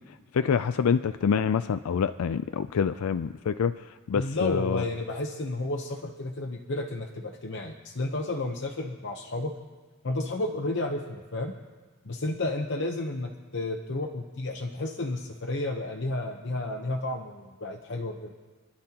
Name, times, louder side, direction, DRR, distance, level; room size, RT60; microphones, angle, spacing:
voice 1, 0.3-4.8, left 6 dB, 85° left, 0.4 m, -26 dB
voice 2, 4.1-9.5 10.0-11.6 12.0-18.3, left 2 dB, 55° left, 0.9 m, -32 dB
29.5 x 11.5 x 2.9 m
head